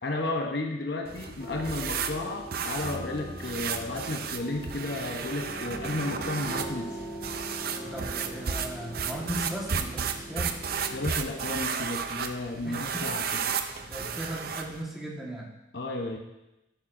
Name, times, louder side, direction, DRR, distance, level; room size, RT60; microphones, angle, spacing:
voice 1, 0.0-7.0 10.9-13.4 15.7-16.2, left 2 dB, 60° left, 3 dB, 0.9 m, -33 dB
sound 1, 1.0-14.8, right 6 dB, 55° right, 0.5 m, -34 dB
sound 2, 1.4-11.1, right 1 dB, 25° left, 1.2 m, -41 dB
sound 3, 2.2-13.1, left 1 dB, 85° left, 2.2 m, -58 dB
voice 2, 7.8-10.6 12.6-13.2 13.8-15.5, equal, ahead, -4 dB, 1.5 m, -37 dB
11.5 x 8.8 x 2.6 m, 0.93 s
head